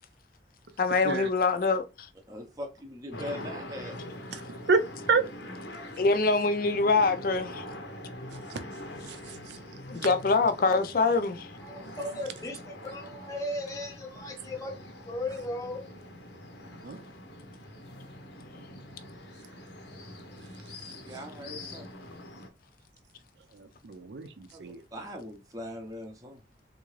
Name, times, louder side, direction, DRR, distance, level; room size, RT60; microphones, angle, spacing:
voice 1, 0.8-1.8 6.0-7.6 9.9-11.5, left 3 dB, 50° left, 0.4 m, -24 dB
voice 2, 2.3-3.9 21.0-21.9 24.5-26.4, left 1 dB, 20° right, 0.6 m, -41 dB
sound 1, 3.1-22.5, left 1 dB, 85° left, 0.8 m, -44 dB
voice 3, 9.1-9.6 16.8-17.0 23.5-24.8, right 4 dB, 75° right, 0.5 m, -28 dB
voice 4, 11.6-15.8, left 1 dB, 20° left, 0.7 m, -37 dB
3.6 x 2.7 x 3.1 m
head